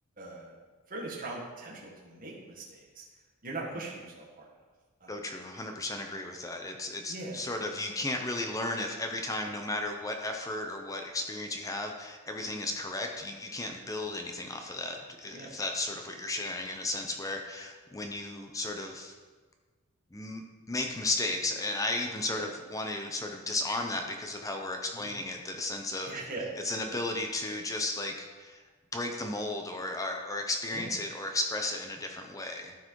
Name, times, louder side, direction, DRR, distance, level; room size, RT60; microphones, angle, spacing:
voice 1, 0.2-0.5 0.9-3.0 3.4-4.5 5.0-5.1 7.1-7.4 15.3-15.5 22.3-22.5 24.9-25.1 26.1-26.5 30.7-30.9, right 2 dB, 40° right, -4 dB, 1.6 m, -40 dB
voice 2, 5.1-19.1 20.1-26.1 26.6-28.6 28.9-32.8, left 2 dB, 15° left, 3 dB, 0.7 m, -34 dB
13.0 x 4.7 x 4.7 m, 1.4 s
head